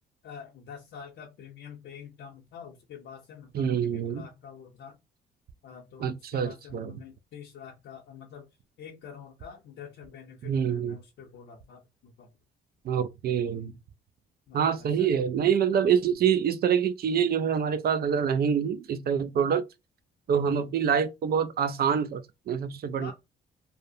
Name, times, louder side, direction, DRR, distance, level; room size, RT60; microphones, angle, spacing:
voice 1, 0.2-5.0 5.6-8.5 8.8-12.3 13.5-13.8 14.5-15.1 16.0-16.2 20.4-20.7 23.0-23.1, left 7 dB, 65° left, 0.6 m, -47 dB
voice 2, 3.5-4.3 6.0-6.9 10.4-11.0 12.8-13.7 14.5-19.6 20.3-23.1, right 7 dB, 50° right, 0.4 m, -26 dB
2.6 x 2.0 x 2.6 m
cardioid pair, 90°, 20 cm